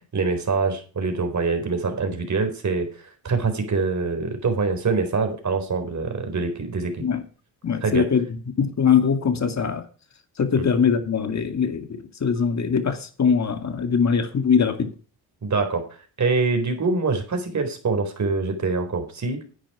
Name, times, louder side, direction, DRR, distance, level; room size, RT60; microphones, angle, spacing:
voice 1, 0.1-7.0 7.8-8.1 10.6-10.7 15.4-15.8 16.2-19.4, right 4 dB, 45° right, 4.0 m, -24 dB
voice 2, 7.6-9.9 10.4-11.9 12.2-14.9, left 6 dB, 40° left, 2.1 m, -22 dB
10.5 x 9.2 x 4.8 m
cardioid pair, 80°, 40 cm